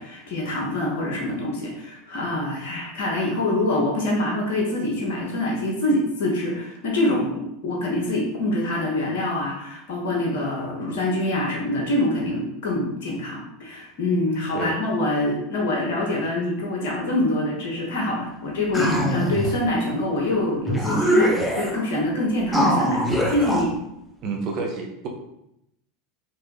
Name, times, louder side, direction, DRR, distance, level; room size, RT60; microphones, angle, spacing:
voice 1, 0.0-23.8, left 1 dB, 55° left, -1 dB, 1.0 m, -25 dB
sound 1, 18.7-19.6 20.3-20.4 20.7-21.8 22.5-23.6, equal, 5° left, 0.7 m, -22 dB
voice 2, 24.2-25.1, right 4 dB, 45° right, 2 dB, 0.8 m, -29 dB
4.5 x 2.6 x 3.2 m, 0.81 s
figure-of-eight pair, 80°, 0 cm